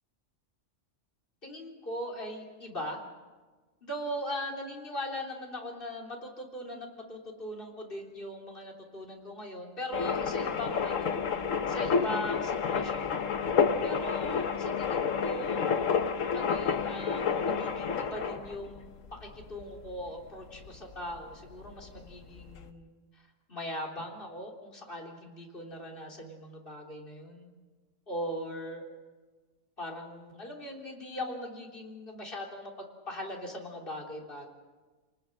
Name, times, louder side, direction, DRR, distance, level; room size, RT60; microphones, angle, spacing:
voice 1, 1.4-3.0 3.8-11.2 11.7-13.3 13.8-15.6 16.3-27.5 28.1-28.8 29.8-34.5, left 1 dB, 45° left, -1 dB, 3.7 m, -40 dB
sound 1, 9.9-20.8 21.2-21.3 21.4-22.6, left 6 dB, 90° left, 1.5 m, -30 dB
29.0 x 19.5 x 6.6 m, 1.3 s
omnidirectional pair, 1.3 m